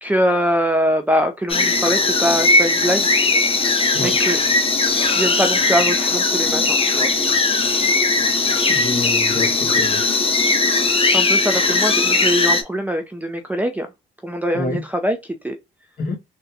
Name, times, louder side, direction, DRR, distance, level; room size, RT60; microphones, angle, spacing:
voice 1, 0.0-3.2 4.0-4.4 5.0-7.1 11.1-13.9 14.2-15.2 15.4-15.6, equal, 10° right, 0.5 m, -22 dB
sound 1, 1.5-12.6, left 3 dB, 30° left, 0.7 m, -18 dB
voice 2, 8.7-10.0 14.5-14.8 16.0-16.2, left 3 dB, 50° left, 1.2 m, -27 dB
3.8 x 2.2 x 2.7 m
cardioid pair, 90°, 20 cm